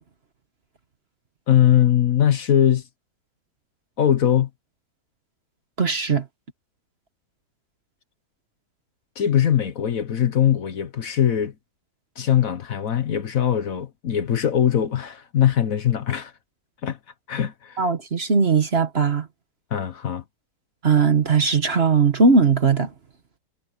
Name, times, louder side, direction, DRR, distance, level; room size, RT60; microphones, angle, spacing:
voice 1, 1.5-2.8 4.0-4.5 9.2-11.5 12.2-16.3 16.8-17.0 17.3-17.8 19.7-20.2, left 10 dB, 60° left, 1.4 m, -21 dB
voice 2, 5.8-6.2 17.8-19.3 20.8-22.9, right 4 dB, 40° right, 1.4 m, -19 dB
omnidirectional pair, 1.8 m